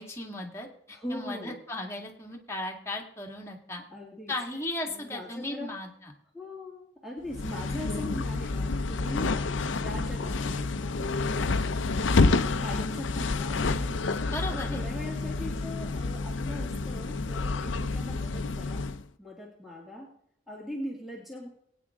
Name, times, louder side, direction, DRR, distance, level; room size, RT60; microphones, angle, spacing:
voice 1, 0.0-3.8 4.3-6.1 14.3-14.9, left 1 dB, 15° left, 0 dB, 1.9 m, -36 dB
voice 2, 0.9-1.6 3.9-4.3 4.9-5.7 6.3-9.3 9.8-11.9 12.3-14.1 14.5-18.9 19.2-20.1 20.5-21.5, left 1 dB, ahead, -3 dB, 2.1 m, -40 dB
sound 1, 7.3-19.0, left 3 dB, 90° left, 0.7 m, -29 dB
21.0 x 9.3 x 3.6 m, 0.69 s
head